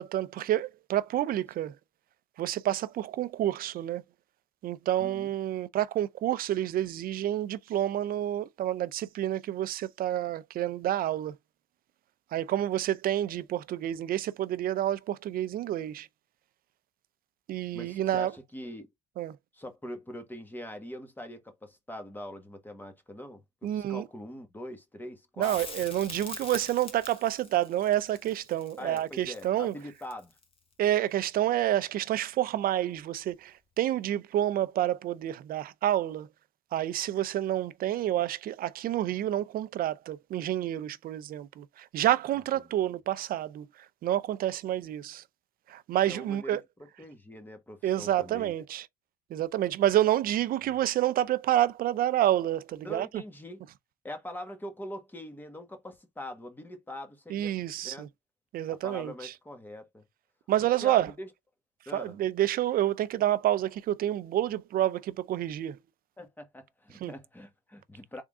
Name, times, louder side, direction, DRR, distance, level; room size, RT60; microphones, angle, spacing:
voice 1, 0.0-1.8 2.4-4.0 4.6-11.3 12.3-16.1 17.5-18.3 19.2-19.4 23.6-24.0 25.4-29.7 30.8-36.3 36.7-43.7 44.0-45.2 45.7-46.6 47.8-48.9 49.3-53.2 57.3-58.1 58.5-59.3 60.5-61.1 61.9-65.8 67.0-67.1, right 12 dB, 60° right, 0.6 m, -29 dB
voice 2, 5.0-5.3 17.7-18.9 19.5-25.6 28.8-30.3 42.5-42.7 46.0-48.5 50.6-50.8 52.8-53.6 54.0-57.5 57.8-58.1 58.7-60.0 60.7-61.3 61.9-62.2 66.2-68.2, left 1 dB, 10° left, 1.3 m, -43 dB
Crackle, 25.4-30.5 33.3-33.4, left 4 dB, 35° left, 1.4 m, -44 dB
3.6 x 3.6 x 3.6 m
cardioid pair, 110°, 17 cm